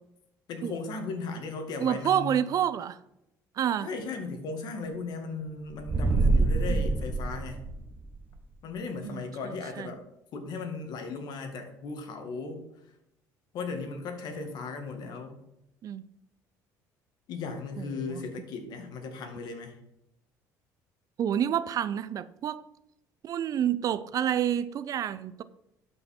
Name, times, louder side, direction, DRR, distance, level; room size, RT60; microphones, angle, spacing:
voice 1, 0.5-2.4 3.8-7.7 8.6-10.0 10.3-12.6 13.5-15.4 17.3-19.8, left 4 dB, 65° left, 5 dB, 2.1 m, -36 dB
voice 2, 1.8-3.0 3.6-3.9 6.7-6.9 9.0-9.9 15.8-16.0 17.8-18.2 21.2-22.6 23.2-25.4, right 10 dB, 50° right, 15 dB, 0.5 m, -29 dB
sound 1, 5.7-8.2, right 3 dB, 25° right, 1.2 m, -25 dB
12.0 x 5.6 x 4.5 m, 0.83 s
cardioid pair, 100°, 8 cm